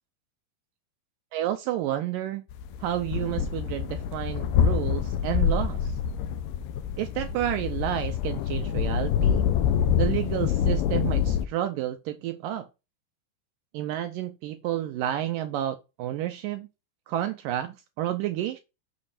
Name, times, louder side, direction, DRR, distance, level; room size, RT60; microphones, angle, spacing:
voice 1, 1.3-2.4 2.8-6.0 7.0-9.5 10.0-12.7 13.7-16.7 17.1-18.6, right 12 dB, 85° right, 1.9 m, -30 dB
sound 1, 2.5-11.5, left 8 dB, 90° left, 1.9 m, -26 dB
6.8 x 6.3 x 4.3 m
omnidirectional pair, 4.6 m